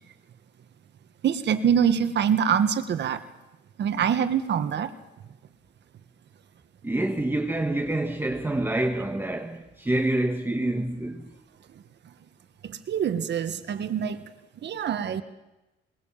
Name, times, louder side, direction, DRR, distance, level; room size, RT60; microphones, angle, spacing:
voice 1, 1.2-3.2 3.8-4.9 12.6-14.2 14.6-15.2, right 8 dB, 60° right, 1.6 m, -25 dB
voice 2, 6.8-11.3, right 1 dB, 10° right, 1.5 m, -27 dB
21.0 x 19.5 x 7.4 m
cardioid pair, 90°, 20 cm